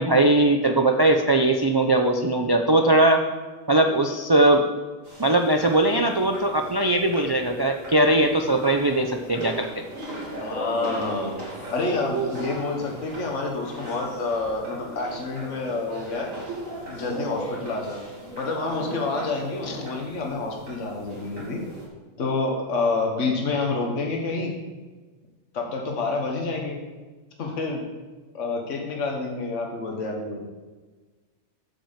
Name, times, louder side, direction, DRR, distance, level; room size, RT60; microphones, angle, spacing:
voice 1, 0.0-3.2 3.7-4.7 5.2-9.7 19.7-19.8, right 1 dB, 40° right, 4 dB, 0.3 m, -20 dB
sound 1, 5.0-21.9, right 2 dB, 80° right, 3.2 m, -37 dB
voice 2, 10.4-11.3 11.7-16.3 16.9-18.0 18.4-21.6 22.2-24.5 25.5-26.8 27.4-27.8 28.3-30.4, left 3 dB, 65° left, 0 dB, 1.6 m, -28 dB
8.9 x 6.0 x 7.4 m, 1.3 s
omnidirectional pair, 1.4 m